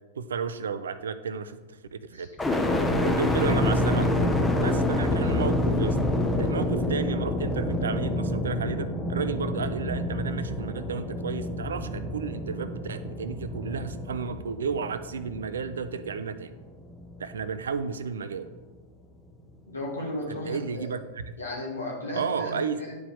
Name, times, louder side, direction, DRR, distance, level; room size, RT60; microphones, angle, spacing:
voice 1, 0.2-2.3 3.0-4.3 4.6-6.0 6.4-16.5 17.2-18.5 20.3-21.3 22.1-22.8, right 6 dB, 65° right, 12 dB, 0.4 m, -32 dB
sound 1, 2.4-16.4 16.9-17.6, left 1 dB, 10° left, 0.8 m, -27 dB
voice 2, 19.7-20.9 21.4-23.0, left 1 dB, 80° left, -4 dB, 2.2 m, -35 dB
10.5 x 4.7 x 3.5 m, 1.2 s
figure-of-eight pair, 90°, 0 cm